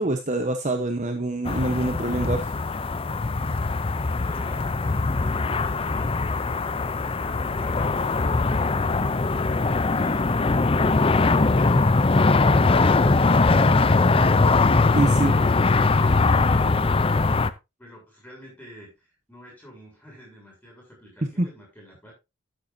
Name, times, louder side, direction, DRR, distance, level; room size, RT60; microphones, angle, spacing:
voice 1, 0.0-2.5 14.9-15.3 21.4-21.5, right 2 dB, 30° right, 6 dB, 1.0 m, -25 dB
sound 1, 1.5-17.5, left 3 dB, 25° left, 0.5 m, -21 dB
voice 2, 4.0-6.6 17.8-22.1, equal, 5° left, -3 dB, 7.2 m, -47 dB
12.5 x 9.3 x 2.7 m, 0.25 s
head